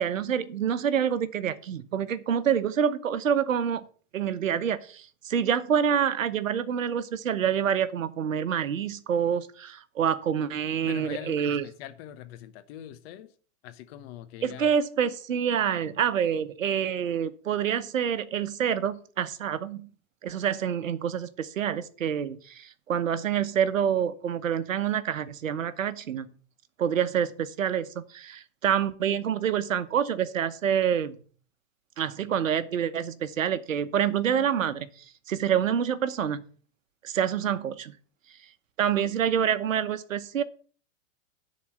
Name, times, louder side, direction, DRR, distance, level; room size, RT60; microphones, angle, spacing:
voice 1, 0.0-3.8 4.1-11.6 14.4-19.9 20.2-26.3 26.8-31.2 32.0-34.9 35.3-36.4 37.0-37.9 38.8-40.4, right 8 dB, 85° right, 14 dB, 1.0 m, -27 dB
voice 2, 10.9-13.3 13.6-14.7, left 10 dB, 50° left, 10 dB, 1.2 m, -42 dB
10.0 x 4.2 x 7.7 m, 0.43 s
hypercardioid pair, 105°, 38 cm